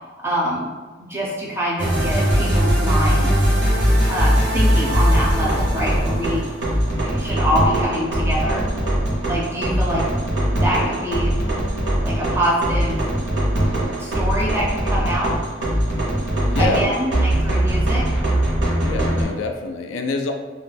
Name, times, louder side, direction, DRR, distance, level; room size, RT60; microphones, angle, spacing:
voice 1, 0.2-0.7 1.0-3.4 4.1-6.5 7.0-8.7 9.3-10.1 10.5-11.3 12.0-13.0 14.0-15.4 16.6-18.1, equal, 15° right, -5 dB, 0.4 m, -24 dB
sound 1, 1.8-19.2, equal, 65° right, 0.7 m, -20 dB
voice 2, 16.5-17.0 18.8-20.3, left 3 dB, 85° left, 4 dB, 0.3 m, -26 dB
2.3 x 2.0 x 3.3 m, 1.3 s
head